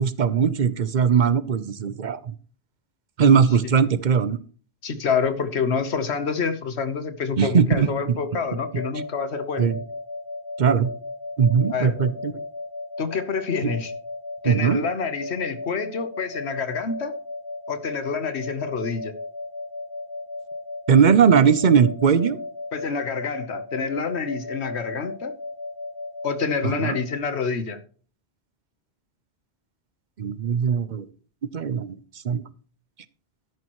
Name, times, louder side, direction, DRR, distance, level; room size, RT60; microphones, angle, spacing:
voice 1, 0.0-2.2 3.2-4.4 7.4-8.2 9.6-9.7 10.6-10.9 11.4-12.3 14.4-14.8 20.9-22.4 26.6-27.0 30.2-31.1 31.5-31.9 32.2-32.4, right 6 dB, 50° right, 15 dB, 0.7 m, -19 dB
voice 2, 4.8-9.7 11.7-12.0 13.0-13.9 14.4-17.1 17.7-19.1 22.7-25.3 26.2-27.8, left 5 dB, 90° left, 10 dB, 1.4 m, -27 dB
sound 1, 8.6-27.2, left 2 dB, 65° left, 1.7 m, -35 dB
12.5 x 10.5 x 3.1 m, 0.41 s
omnidirectional pair, 1.1 m